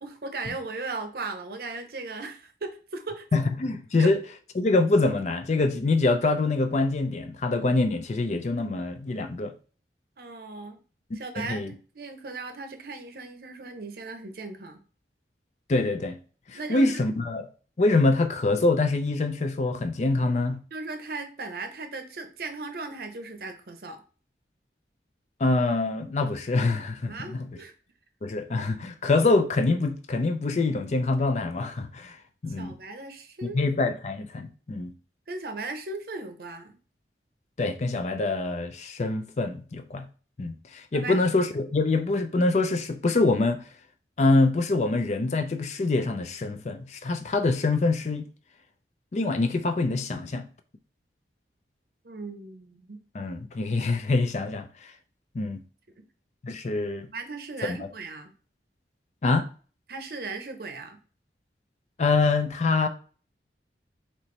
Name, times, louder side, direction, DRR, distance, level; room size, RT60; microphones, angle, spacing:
voice 1, 0.0-3.3 4.0-4.1 10.2-10.8 11.1-14.8 16.5-17.0 20.7-24.0 27.0-27.7 32.6-33.6 35.3-36.8 40.9-41.2 52.0-53.0 56.0-56.1 57.1-58.3 59.9-61.0, right 3 dB, 55° right, 0.7 m, -37 dB
voice 2, 3.3-4.2 4.6-9.5 11.4-11.7 15.7-16.2 16.5-17.5 17.8-20.6 25.4-27.5 28.2-32.2 32.4-32.7 33.4-34.9 37.6-40.1 40.4-43.6 44.2-48.3 49.1-50.5 53.1-54.7 55.3-55.6 56.4-57.1 57.7-57.8 59.2-59.5 62.0-62.9, left 3 dB, 40° left, 0.4 m, -25 dB
4.3 x 3.0 x 3.2 m
head